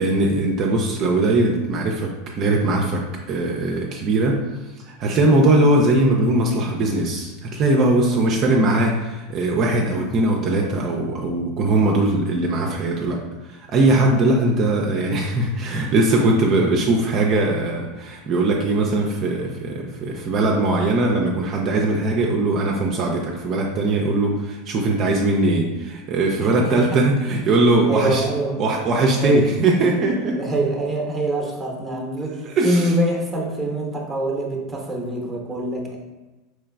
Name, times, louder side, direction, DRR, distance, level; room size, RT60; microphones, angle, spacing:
voice 1, 0.0-2.1 2.4-3.0 3.3-4.4 4.9-13.2 13.5-28.2 28.6-30.4 32.4-32.9, right 2 dB, 45° right, 0 dB, 0.4 m, -20 dB
voice 2, 26.4-27.0 27.9-28.6 29.2-29.5 30.3-36.0, right 1 dB, 10° right, 0 dB, 0.8 m, -24 dB
3.8 x 3.0 x 2.2 m, 1.1 s
hypercardioid pair, 90°, 0 cm